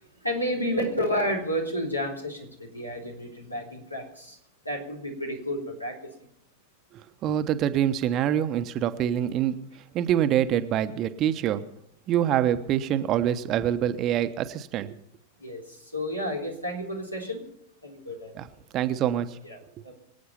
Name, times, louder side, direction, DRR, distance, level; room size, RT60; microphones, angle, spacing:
voice 1, 0.2-4.4 4.7-6.1 15.4-17.4 17.8-18.4 19.4-19.6 19.8-19.9, equal, 85° left, 0 dB, 3.6 m, -31 dB
voice 2, 6.9-9.6 9.9-11.6 12.1-15.0 18.4-18.5 18.7-19.4 19.8-19.9, right 10 dB, 35° right, 11 dB, 1.0 m, -25 dB
25.0 x 8.7 x 5.6 m, 0.73 s
figure-of-eight pair, 90°, 0 cm